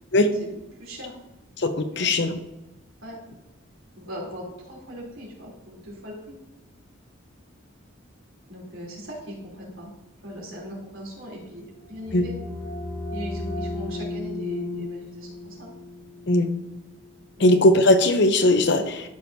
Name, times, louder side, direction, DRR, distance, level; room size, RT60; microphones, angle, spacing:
voice 1, 0.2-1.1 2.0-2.1 3.0-3.2 4.0-6.4 8.5-9.9 10.2-12.3 13.1-15.7 17.4-17.5, equal, 85° right, -3 dB, 3.4 m, -39 dB
voice 2, 1.6-2.4 12.1-12.2 16.3-16.5 17.4-19.1, left 1 dB, 60° left, 8 dB, 0.8 m, -19 dB
sound 1, 11.7-17.3, left 2 dB, 75° left, 2.6 m, -35 dB
13.0 x 6.2 x 2.8 m, 0.96 s
head